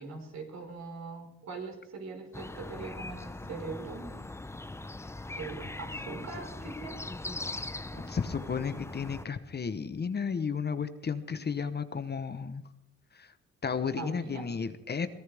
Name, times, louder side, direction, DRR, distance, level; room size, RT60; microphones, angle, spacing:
voice 1, 0.0-4.1 5.4-7.0 7.9-8.2 14.0-14.5, right 4 dB, 65° right, 2 dB, 5.2 m, -41 dB
sound 1, 2.3-9.3, left 2 dB, 10° left, 0.6 m, -40 dB
voice 2, 8.1-12.6 13.1-13.3 13.6-15.1, left 6 dB, 35° left, 11 dB, 1.1 m, -33 dB
23.5 x 17.5 x 3.6 m, 0.82 s
cardioid pair, 90°, 30 cm